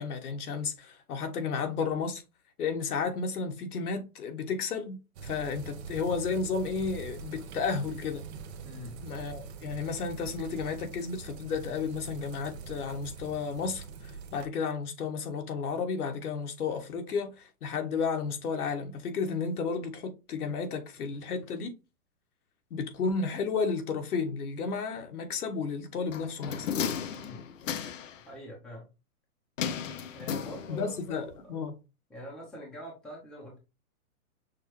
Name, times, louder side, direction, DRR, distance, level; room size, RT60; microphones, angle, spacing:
voice 1, 0.0-2.2 2.6-8.3 9.0-21.8 22.7-26.7 30.7-31.8, left 5 dB, 75° left, 1.4 m, -32 dB
sound 1, 5.1-14.5, right 6 dB, 45° right, 0.8 m, -44 dB
voice 2, 8.6-9.0 27.1-27.5 28.3-28.9 30.1-31.5 32.1-33.6, equal, ahead, 0.7 m, -45 dB
sound 2, 26.1-28.2 29.6-31.0 31.3-31.4, left 7 dB, 60° left, 0.7 m, -34 dB
6.4 x 2.4 x 3.0 m
hypercardioid pair, 160°, 45 cm